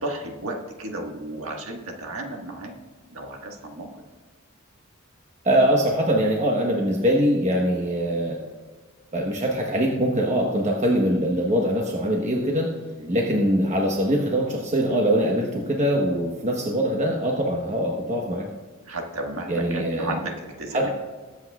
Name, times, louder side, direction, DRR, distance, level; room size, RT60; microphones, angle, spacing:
voice 1, 0.0-2.7 3.1-3.9 13.0-13.2 18.9-20.9, right 1 dB, 80° right, 2 dB, 1.6 m, -33 dB
voice 2, 5.4-8.4 9.1-12.7 13.1-18.4 19.5-20.1 20.7-20.9, equal, 35° right, -1 dB, 1.1 m, -23 dB
21.5 x 8.1 x 2.4 m, 1.4 s
head